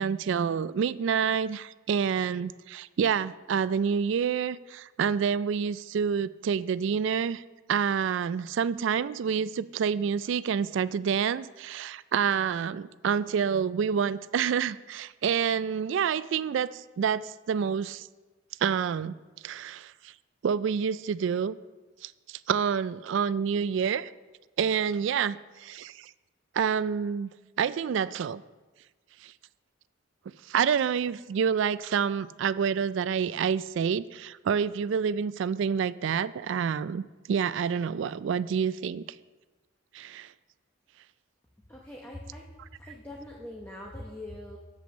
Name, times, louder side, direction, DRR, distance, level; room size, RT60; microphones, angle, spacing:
voice 1, 0.0-7.4 7.7-18.1 18.6-19.1 19.4-20.1 20.4-21.6 22.0-24.1 24.6-26.1 26.5-27.3 27.6-28.4 29.2-29.3 30.5-37.0 37.3-39.0 39.9-40.3, right 7 dB, 65° right, 17 dB, 0.3 m, -28 dB
voice 2, 41.7-42.5 42.8-44.6, left 1 dB, 10° left, -2 dB, 0.9 m, -42 dB
8.4 x 7.8 x 6.3 m, 1.2 s
head